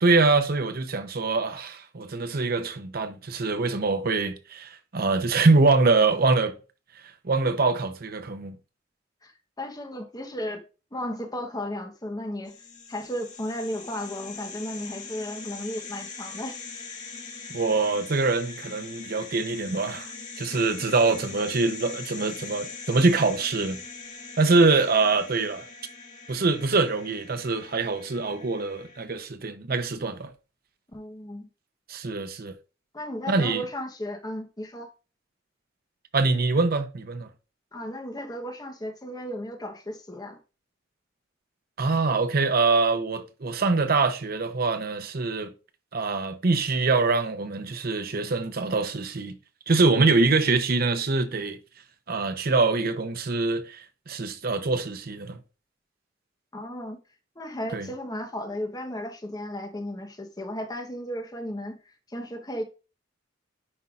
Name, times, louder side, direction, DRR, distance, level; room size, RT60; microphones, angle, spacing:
voice 1, 0.0-6.6 7.2-8.6 17.5-20.1 20.4-23.8 24.4-25.7 26.3-30.3 31.9-32.6 33.3-33.6 36.1-37.3 41.8-45.5 45.9-49.4 49.7-51.6 52.1-55.4 57.7-57.9, right 3 dB, 50° right, 0.7 m, -24 dB
voice 2, 9.6-10.6 10.9-12.6 12.9-16.6 30.9-31.5 32.9-34.9 37.7-40.4 56.5-57.0 57.4-62.6, left 1 dB, 20° left, 1.0 m, -34 dB
sound 1, 12.5-29.0, left 4 dB, 40° left, 2.1 m, -42 dB
9.7 x 5.5 x 2.5 m
head